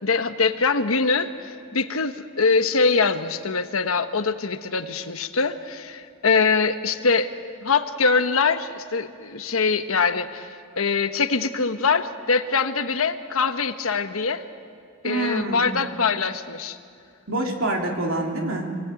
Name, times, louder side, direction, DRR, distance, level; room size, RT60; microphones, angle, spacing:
voice 1, 0.0-7.3 7.6-14.4 15.0-16.8, left 4 dB, 90° left, 9 dB, 1.2 m, -23 dB
voice 2, 15.0-15.6 17.3-18.7, right 2 dB, 70° right, 1 dB, 3.3 m, -26 dB
26.5 x 19.0 x 9.1 m, 2.3 s
head